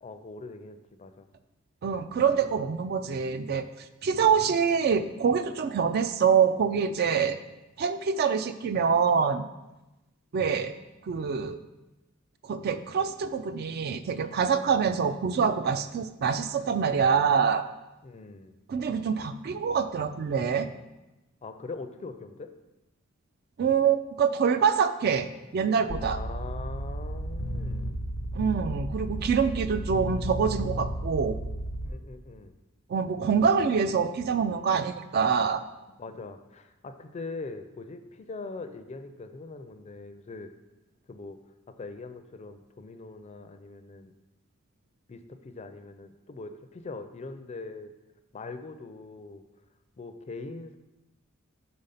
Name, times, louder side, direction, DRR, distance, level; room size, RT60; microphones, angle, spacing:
voice 1, 0.0-1.3 4.1-4.3 18.0-18.5 21.4-22.5 26.0-28.0 31.8-32.6 36.0-40.5 41.1-41.4 41.7-44.1 45.1-47.9 48.3-49.4 50.0-50.8, left 3 dB, 35° left, 8 dB, 0.4 m, -42 dB
voice 2, 1.8-3.7 4.0-7.4 7.8-9.4 10.3-10.7 11.0-11.6 12.4-17.6 18.7-20.7 23.6-25.3 25.5-26.2 28.3-31.4 32.9-35.6, right 6 dB, 50° right, 11 dB, 0.3 m, -25 dB
sound 1, 25.9-31.9, right 1 dB, 85° left, 0.6 m, -33 dB
5.2 x 4.0 x 5.6 m, 1.0 s
head